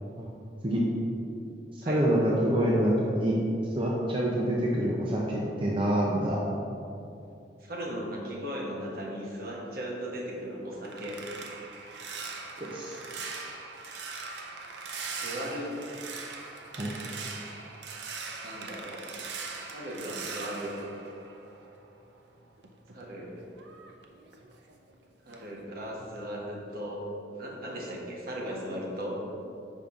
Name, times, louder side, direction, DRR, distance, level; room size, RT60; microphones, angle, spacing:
voice 1, 1.9-3.4 3.8-6.4 12.6-13.0 16.8-16.9, right 1 dB, 30° right, -4 dB, 0.6 m, -26 dB
voice 2, 7.6-11.3 15.1-15.8 18.4-19.0 19.7-20.7 22.9-23.4 25.2-27.0 27.4-29.2, equal, 60° right, -2 dB, 1.1 m, -37 dB
sound 1, 10.3-21.9 22.3-24.9 25.3-25.6 26.0-26.2, right 4 dB, 75° right, 0.6 m, -41 dB
5.2 x 3.9 x 5.8 m, 2.7 s
head